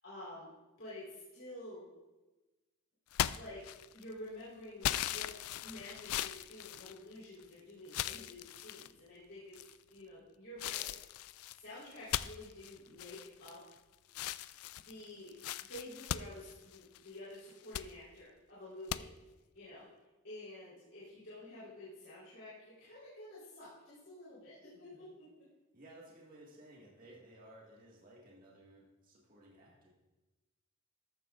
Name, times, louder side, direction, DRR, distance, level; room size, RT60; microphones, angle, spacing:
voice 1, 0.0-0.5 0.8-1.8 3.3-3.6 3.9-5.3 5.6-9.5 9.9-11.1 11.5-13.6 14.8-19.1 19.5-19.9 20.2-25.2, left 1 dB, 60° left, -10 dB, 4.0 m, -50 dB
sound 1, 3.1-4.1 4.8-7.4 7.9-8.9 9.5-10.0 10.6-13.8 14.1-17.1 17.5-17.9 18.9-19.0, left 12 dB, 85° left, 0.3 m, -39 dB
voice 2, 25.7-29.9, right 1 dB, 40° right, -4 dB, 1.8 m, -57 dB
14.0 x 12.0 x 2.5 m, 1.1 s
head